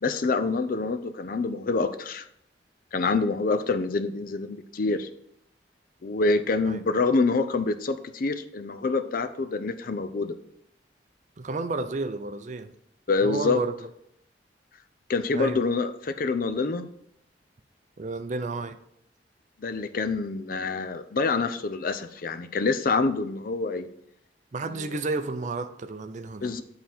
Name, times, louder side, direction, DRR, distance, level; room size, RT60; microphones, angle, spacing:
voice 1, 0.0-2.2 2.9-5.1 6.0-10.3 13.1-13.6 15.1-16.9 19.6-23.9 24.6-24.9 26.4-26.6, left 3 dB, 55° left, 10 dB, 0.5 m, -26 dB
voice 2, 11.4-12.7 13.2-13.9 15.3-15.6 18.0-18.8 24.5-26.5, right 3 dB, 45° right, 9 dB, 0.5 m, -31 dB
9.1 x 3.8 x 4.3 m, 0.74 s
head